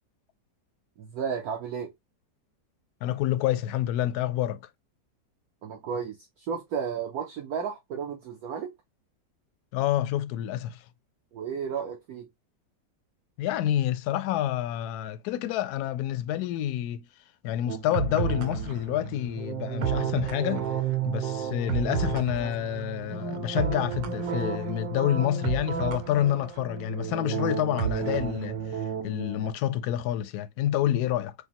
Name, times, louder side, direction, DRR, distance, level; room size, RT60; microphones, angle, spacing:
voice 1, 1.0-1.9 5.6-8.7 11.3-12.3, right 7 dB, 65° right, 1.1 m, -33 dB
voice 2, 3.0-4.6 9.7-10.8 13.4-17.0 17.4-20.8 21.0-31.3, left 12 dB, 70° left, 1.0 m, -28 dB
sound 1, 17.7-29.5, right 8 dB, 85° right, 1.4 m, -31 dB
5.0 x 2.2 x 2.8 m
omnidirectional pair, 1.9 m